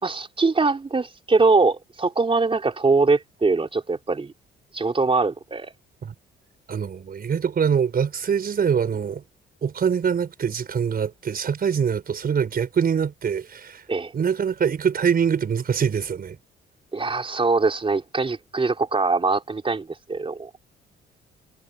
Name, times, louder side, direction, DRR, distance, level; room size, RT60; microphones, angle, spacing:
voice 1, 0.0-4.3 4.7-5.7 13.9-14.1 16.9-20.5, right 3 dB, 25° right, 3.8 m, -22 dB
voice 2, 6.7-9.2 9.6-13.8 14.1-16.4, right 7 dB, 50° right, 5.0 m, -24 dB
cardioid pair, 90°, 20 cm